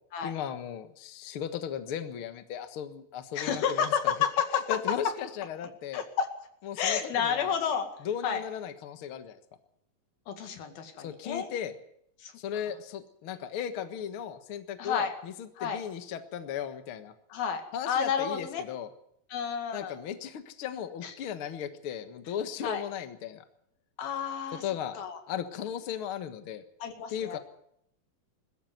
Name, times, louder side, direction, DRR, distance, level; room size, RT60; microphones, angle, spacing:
voice 1, 0.2-4.1 4.7-6.0 6.6-7.5 8.0-9.4 11.0-11.7 12.4-17.1 17.7-18.9 19.7-23.4 24.5-25.0 25.3-26.6 27.1-27.4, left 9 dB, 50° left, 9 dB, 1.8 m, -36 dB
voice 2, 3.4-4.6 5.9-6.3 6.8-7.9 8.2-8.4 10.3-11.5 12.2-12.3 14.8-15.1 15.6-15.8 17.3-18.6 19.3-20.0 21.0-21.1 22.6-22.8 24.0-24.6 25.0-25.2 26.8-27.4, left 7 dB, 90° left, 6 dB, 4.0 m, -30 dB
21.0 x 14.0 x 9.4 m, 0.71 s
omnidirectional pair, 4.1 m